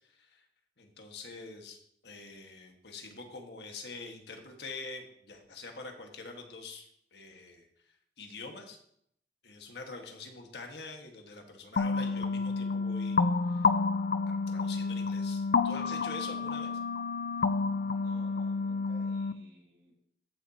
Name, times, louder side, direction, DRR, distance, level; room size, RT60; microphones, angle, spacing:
voice 1, 0.1-0.4 0.8-1.8 2.0-6.9 7.1-7.7 8.2-8.8 9.4-13.7 14.3-16.8, left 3 dB, 75° left, 3 dB, 1.5 m, -45 dB
sound 1, 11.8-19.3, left 4 dB, 55° left, 0.4 m, -30 dB
voice 2, 17.8-19.9, right 1 dB, 75° right, -2 dB, 3.9 m, -56 dB
14.5 x 7.0 x 2.8 m, 0.70 s
head